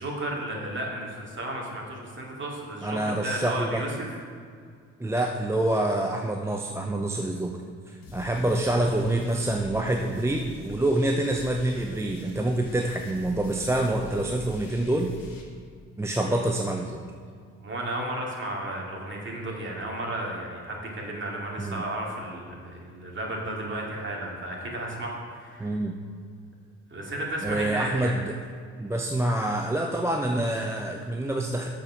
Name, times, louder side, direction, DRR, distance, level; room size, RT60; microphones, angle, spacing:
voice 1, 0.0-4.1 16.2-16.3 17.6-25.8 26.9-28.2, right 1 dB, 30° right, -2 dB, 2.5 m, -33 dB
voice 2, 2.8-3.8 5.0-7.6 7.9-15.2 16.0-17.0 21.6-21.8 25.6-25.9 27.4-28.3 28.8-31.7, right 1 dB, 5° right, 2 dB, 0.6 m, -26 dB
sound 1, 8.0-15.4, left 2 dB, 70° left, 1.4 m, -45 dB
7.6 x 6.9 x 5.7 m, 2.1 s
figure-of-eight pair, 45°, 39 cm